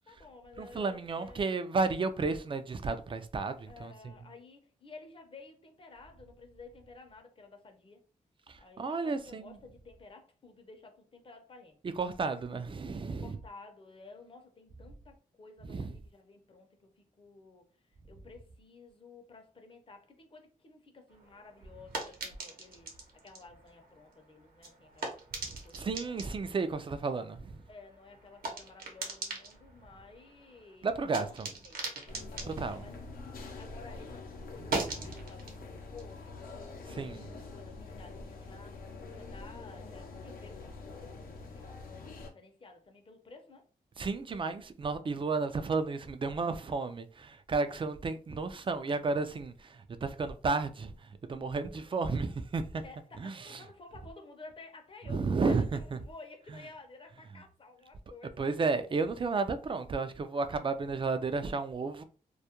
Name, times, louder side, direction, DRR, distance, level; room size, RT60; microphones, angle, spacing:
voice 1, 0.0-1.8 3.7-8.0 8.6-11.8 13.2-22.9 23.2-25.2 25.6-26.2 27.7-31.3 31.5-31.8 32.3-33.0 33.6-37.0 37.5-38.8 39.1-43.6 52.7-58.5, left 3 dB, 35° left, 0.7 m, -53 dB
voice 2, 0.6-4.1 8.5-9.6 12.0-13.4 15.6-15.9 25.4-27.6 30.8-31.5 32.5-32.9 35.0-35.2 36.9-37.3 44.0-52.8 53.2-53.6 55.1-56.0 56.5-56.6 58.4-62.0, right 4 dB, 35° right, 0.4 m, -33 dB
sound 1, 21.1-33.9 34.2-37.4, right 3 dB, 85° right, 0.8 m, -42 dB
sound 2, 32.1-42.3, left 3 dB, 80° left, 0.6 m, -45 dB
2.3 x 2.1 x 2.9 m
cardioid pair, 75°, 15 cm